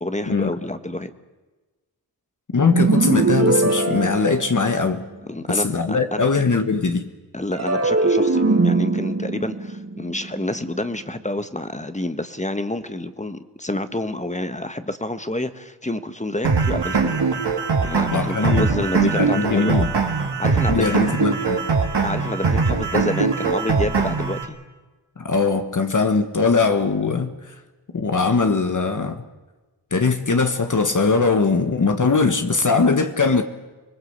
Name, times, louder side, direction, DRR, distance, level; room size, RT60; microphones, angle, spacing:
voice 1, 0.0-1.1 5.3-6.3 7.3-17.2 17.8-19.9 20.4-21.0 22.0-24.6, left 1 dB, 15° left, 1.3 m, -28 dB
voice 2, 2.5-5.0 5.5-7.1 18.1-18.7 19.0-19.9 20.7-21.7 25.2-27.6 27.9-29.2 29.9-33.4, left 4 dB, 45° left, 1.5 m, -20 dB
sound 1, 2.7-5.1 7.5-10.8, right 3 dB, 40° right, 1.6 m, -21 dB
sound 2, 16.4-24.4, right 4 dB, 80° right, 3.2 m, -21 dB
25.5 x 21.0 x 8.1 m
wide cardioid pair, 85°, 41 cm